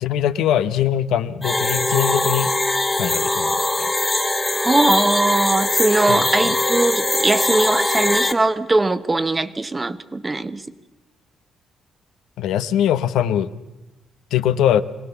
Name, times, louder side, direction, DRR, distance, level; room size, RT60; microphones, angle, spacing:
voice 1, 0.0-2.5 3.0-3.9 6.1-6.2 12.4-13.5 14.3-14.8, left 10 dB, 85° left, 12 dB, 0.8 m, -21 dB
sound 1, 1.4-8.3, left 2 dB, 15° left, 1.7 m, -21 dB
voice 2, 4.6-10.6, right 2 dB, 20° right, 13 dB, 1.0 m, -20 dB
23.0 x 17.5 x 7.0 m, 1.1 s
cardioid pair, 90°, 0 cm